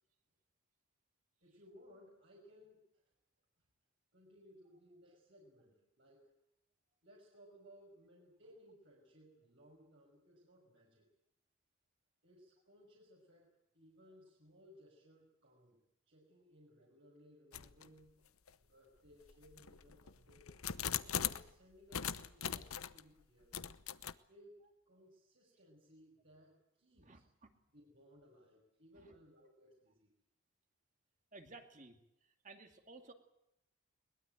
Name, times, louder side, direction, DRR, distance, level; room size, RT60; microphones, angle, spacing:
voice 1, 1.4-3.0 4.1-6.3 7.0-11.1 12.2-15.8 16.1-18.3 18.6-20.5 21.0-23.5 24.3-24.6 24.9-27.2 27.7-30.1, equal, 55° right, -3 dB, 5.9 m, -62 dB
sound 1, 17.5-17.9 18.5-18.6 19.3-21.5 21.9-23.0 23.5-24.1, left 9 dB, 85° left, 0.9 m, -40 dB
voice 2, 27.0-27.5 29.0-29.1 31.3-33.1, right 3 dB, 35° right, 5 dB, 2.4 m, -56 dB
22.0 x 21.0 x 9.1 m, 0.82 s
head